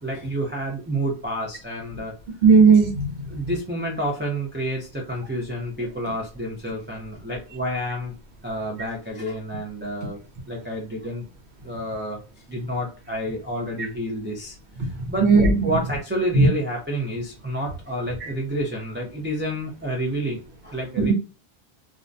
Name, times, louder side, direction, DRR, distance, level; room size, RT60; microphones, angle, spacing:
voice 1, 0.0-2.1 3.3-8.2 8.4-10.2 10.5-11.3 11.6-12.2 12.5-15.3 15.6-20.4 20.6-21.1, equal, 15° right, -2 dB, 0.4 m, -29 dB
voice 2, 2.4-3.1 14.8-14.9 15.2-15.8 16.3-16.5 18.2-18.3 21.0-21.1, right 4 dB, 80° right, 2 dB, 1.0 m, -16 dB
2.4 x 2.2 x 2.5 m, 0.32 s
omnidirectional pair, 1.1 m